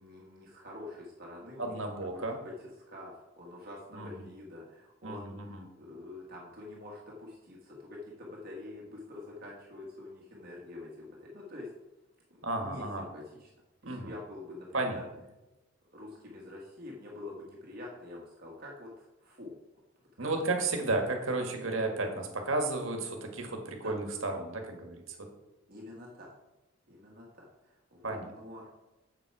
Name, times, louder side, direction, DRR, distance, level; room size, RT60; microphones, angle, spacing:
voice 1, 0.0-11.7 12.3-13.5 13.8-15.1 15.9-19.5 20.0-20.3 23.7-24.0 25.7-26.3 26.9-28.7, left 2 dB, 50° right, -3 dB, 1.6 m, -46 dB
voice 2, 1.6-2.4 3.9-4.3 5.0-5.6 12.4-13.0 13.8-14.1 14.7-15.0 20.2-25.2 28.0-28.3, right 2 dB, 85° right, 3 dB, 1.7 m, -33 dB
7.7 x 7.5 x 4.7 m, 1.0 s
head